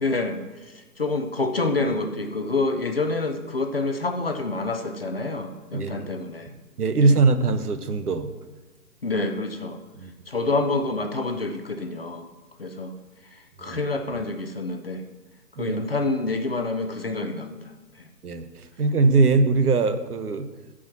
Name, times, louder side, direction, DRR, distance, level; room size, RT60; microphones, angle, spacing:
voice 1, 0.0-6.5 6.9-7.1 9.0-9.8 10.3-12.3 12.6-12.9 13.6-15.0 15.6-17.6 18.0-18.1, left 3 dB, 40° left, 5 dB, 0.6 m, -27 dB
voice 2, 5.7-6.1 6.8-8.3 10.0-10.1 13.6-13.8 15.6-15.8 18.2-20.5, right 3 dB, 70° right, 9 dB, 1.1 m, -21 dB
12.5 x 5.0 x 6.0 m, 1.2 s
hypercardioid pair, 170°, 48 cm